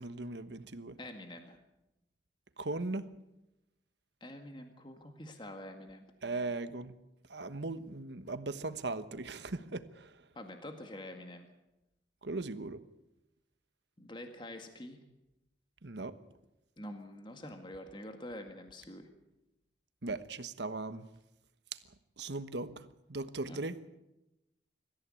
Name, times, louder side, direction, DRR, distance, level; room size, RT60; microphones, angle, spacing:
voice 1, 0.0-1.0 2.6-3.1 6.2-6.9 7.3-10.3 12.2-12.8 15.8-16.2 20.0-21.1 21.7-21.8 22.2-23.8, right 2 dB, 70° right, 11 dB, 1.2 m, -38 dB
voice 2, 1.0-1.6 4.2-6.0 10.4-11.5 14.0-15.0 16.8-19.1 23.5-23.6, left 1 dB, 25° left, 5 dB, 1.9 m, -46 dB
24.5 x 14.5 x 8.6 m, 0.94 s
head